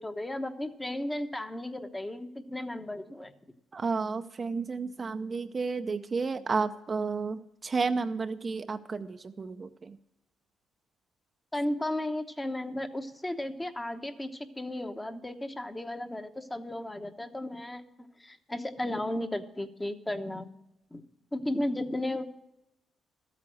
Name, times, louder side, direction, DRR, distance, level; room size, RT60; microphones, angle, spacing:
voice 1, 0.0-3.3 11.5-17.8 18.2-20.5 20.9-21.0 21.3-22.2, left 1 dB, 15° left, 7 dB, 1.1 m, -34 dB
voice 2, 3.7-10.0, right 4 dB, 35° right, 8 dB, 0.6 m, -32 dB
13.5 x 8.4 x 6.3 m, 0.86 s
cardioid pair, 90°, 0 cm